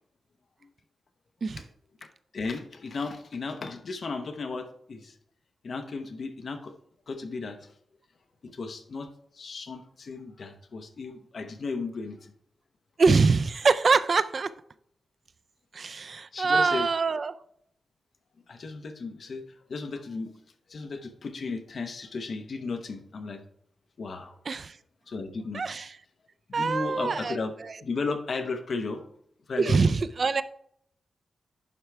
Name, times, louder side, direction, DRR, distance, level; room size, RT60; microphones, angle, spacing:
voice 1, 2.0-5.1 5.6-6.7 7.1-7.7 8.4-12.3 16.3-16.9 18.5-19.4 19.7-20.3 20.7-23.4 24.0-24.4 25.1-25.6 26.5-27.5 27.8-29.1 29.5-30.0, left 4 dB, 55° left, 7 dB, 0.8 m, -35 dB
voice 2, 13.0-14.5 15.7-17.4 24.5-24.8 25.5-26.0 26.5-27.8 29.6-30.4, right 4 dB, 45° right, 14 dB, 0.4 m, -24 dB
11.0 x 4.6 x 3.3 m, 0.69 s
wide cardioid pair, 145°, 0 cm